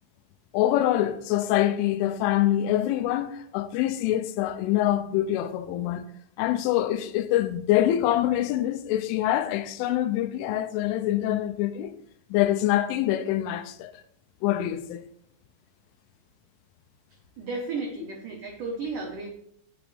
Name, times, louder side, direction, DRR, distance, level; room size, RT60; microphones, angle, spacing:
voice 1, 0.5-6.0 6.4-11.9 12.3-13.9 14.4-15.0, left 13 dB, 85° left, 3.0 m, -25 dB
voice 2, 17.4-19.3, right 3 dB, 85° right, 1.8 m, -33 dB
16.5 x 6.1 x 3.4 m
omnidirectional pair, 5.7 m